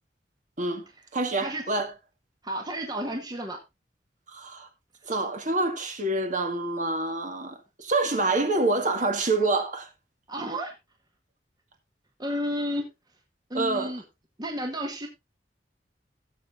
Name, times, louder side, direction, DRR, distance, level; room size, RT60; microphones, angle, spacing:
voice 1, 1.1-1.9 4.3-4.7 5.1-9.9 13.5-13.9, right 2 dB, 45° right, 1.9 m, -27 dB
voice 2, 2.4-3.6 10.3-10.7 12.2-12.9 13.5-14.0 14.4-15.1, equal, 25° right, 1.4 m, -31 dB
17.0 x 7.6 x 2.6 m
head